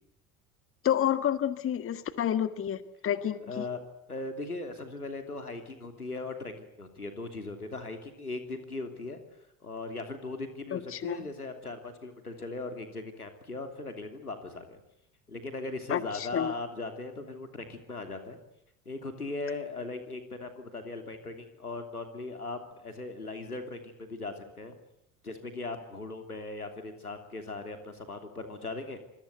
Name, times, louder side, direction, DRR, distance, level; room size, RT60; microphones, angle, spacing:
voice 1, 0.8-3.6 10.7-11.3 15.9-16.5, left 10 dB, 30° left, 13 dB, 1.5 m, -29 dB
voice 2, 3.4-3.8 4.1-6.5 6.8-9.2 9.6-14.8 15.3-18.4 18.8-24.7 25.2-29.0, left 3 dB, 90° left, 7 dB, 3.1 m, -39 dB
27.0 x 21.5 x 8.1 m, 0.79 s
figure-of-eight pair, 70°, 44 cm